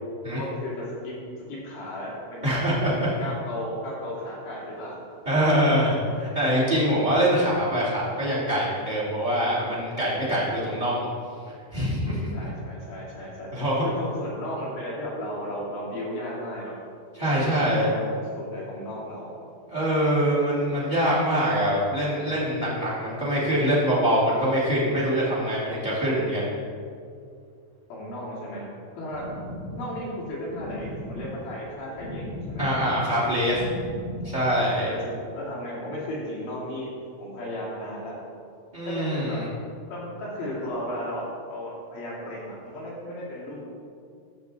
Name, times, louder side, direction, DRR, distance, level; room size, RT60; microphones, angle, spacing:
voice 1, 0.3-1.1 1.5-2.6 3.2-5.0 12.3-13.5 13.8-16.7 17.3-19.3 27.9-28.7 28.9-29.2 29.8-32.7 34.8-36.9 37.2-38.2 38.8-39.4 39.9-43.6, left 1 dB, 50° left, -7 dB, 4.2 m, -35 dB
voice 2, 2.4-3.1 5.2-11.1 11.7-12.3 13.5-13.9 17.1-17.9 19.7-26.5 32.6-33.6 34.2-34.9 38.7-39.4, equal, 30° right, -7 dB, 0.8 m, -24 dB
sound 1, 29.1-34.9, left 1 dB, 65° left, 4.9 m, -37 dB
14.5 x 6.6 x 4.1 m, 2.3 s
omnidirectional pair, 5.8 m